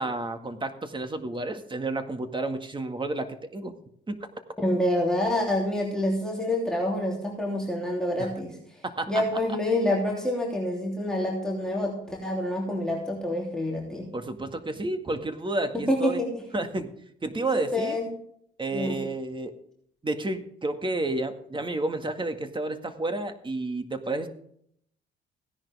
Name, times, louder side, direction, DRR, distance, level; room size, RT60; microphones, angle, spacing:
voice 1, 0.0-3.7 4.1-4.2 8.2-8.3 8.8-9.2 14.1-16.2 16.5-16.9 17.2-18.0 18.6-19.5 20.0-24.3, right 2 dB, 25° right, 7 dB, 1.9 m, -31 dB
voice 2, 4.6-8.6 9.1-14.1 15.7-16.3 17.5-18.1 18.7-19.0, left 1 dB, 5° left, -3 dB, 3.2 m, -27 dB
16.5 x 10.5 x 3.5 m, 0.67 s
cardioid pair, 90°, 20 cm